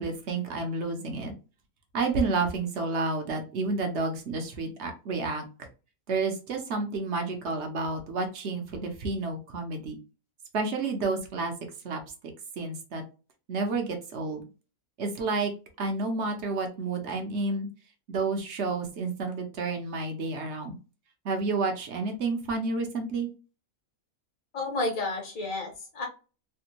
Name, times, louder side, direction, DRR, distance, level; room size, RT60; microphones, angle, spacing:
voice 1, 0.0-1.3 1.9-5.4 6.1-10.0 10.5-11.5 11.8-12.0 12.6-13.0 13.5-14.4 15.0-15.5 15.8-17.7 18.1-20.7 21.2-23.3, right 3 dB, 55° right, 4 dB, 1.0 m, -30 dB
voice 2, 24.5-26.1, left 2 dB, 65° left, 1 dB, 1.6 m, -31 dB
3.4 x 2.2 x 2.8 m, 0.32 s
omnidirectional pair, 1.5 m